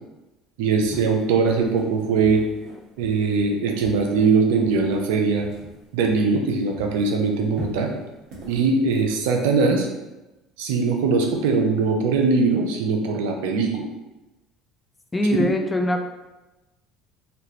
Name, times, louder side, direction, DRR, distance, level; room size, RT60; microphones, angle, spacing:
voice 1, 0.6-2.4 3.0-5.5 5.9-7.9 8.5-9.9 10.6-13.9 15.3-15.4, right 4 dB, 80° right, 3 dB, 0.5 m, -21 dB
sound 1, 0.8-6.5 6.7-9.6, left 1 dB, 60° right, 1.1 m, -42 dB
voice 2, 15.1-16.0, equal, 20° left, 4 dB, 0.5 m, -22 dB
3.3 x 2.4 x 2.9 m, 1.0 s
hypercardioid pair, 80°, 0 cm